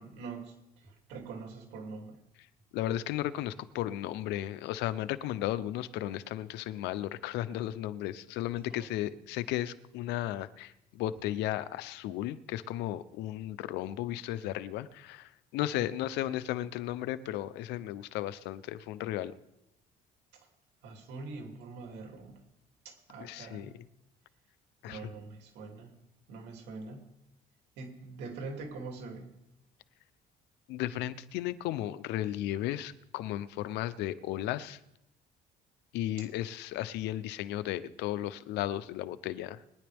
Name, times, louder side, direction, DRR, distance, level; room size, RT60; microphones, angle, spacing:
voice 1, 0.0-2.2 8.7-8.9 15.7-15.8 20.8-22.4 22.8-23.7 24.9-26.0 26.3-27.0 27.8-29.3, right 3 dB, 85° right, 2 dB, 2.9 m, -44 dB
voice 2, 2.7-19.3 23.2-23.7 24.8-25.0 30.7-34.8 35.9-39.8, left 13 dB, 90° left, 15 dB, 0.7 m, -35 dB
22.0 x 10.5 x 3.5 m, 0.86 s
cardioid pair, 110°, 17 cm